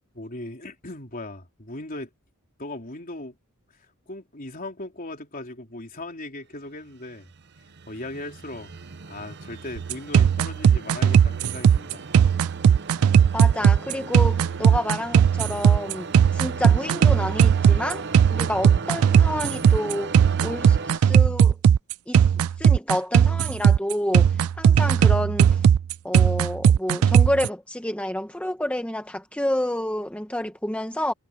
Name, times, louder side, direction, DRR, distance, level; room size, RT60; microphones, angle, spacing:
voice 1, 0.1-2.1 2.6-3.4 4.1-7.3 7.9-8.7 9.1-12.1, left 2 dB, 40° left, 3.9 m, -38 dB
sound 1, 6.9-21.0, right 4 dB, 50° right, 0.8 m, -37 dB
sound 2, 9.8-27.5, right 8 dB, 75° right, 0.3 m, -17 dB
voice 2, 13.3-20.1 20.4-21.6 22.1-22.3 22.6-25.6 26.0-31.1, left 1 dB, 5° left, 1.0 m, -29 dB
head